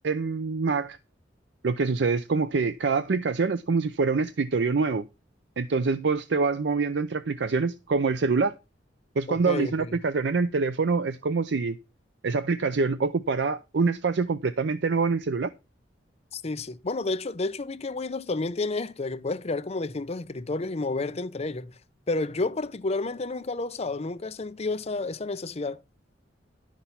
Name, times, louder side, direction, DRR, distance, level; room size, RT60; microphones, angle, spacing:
voice 1, 0.0-1.0 1.6-5.1 5.6-8.5 9.2-11.8 12.2-15.5, right 4 dB, 65° right, 0.5 m, -25 dB
voice 2, 9.3-10.0 16.3-21.8 22.1-25.8, left 3 dB, 35° left, 0.6 m, -30 dB
11.0 x 6.1 x 5.7 m
head